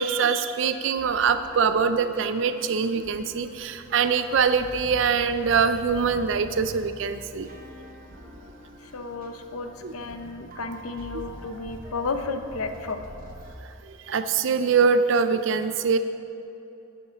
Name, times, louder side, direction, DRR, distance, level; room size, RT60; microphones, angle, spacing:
voice 1, 0.0-7.5 9.8-9.9 11.1-11.2 13.9-16.0, right 5 dB, 60° right, 10 dB, 0.4 m, -23 dB
sound 1, 1.0-13.6, right 1 dB, 40° right, 0.9 m, -44 dB
voice 2, 8.9-13.0, left 3 dB, 85° left, 7 dB, 0.7 m, -33 dB
11.0 x 6.8 x 5.1 m, 2.8 s
head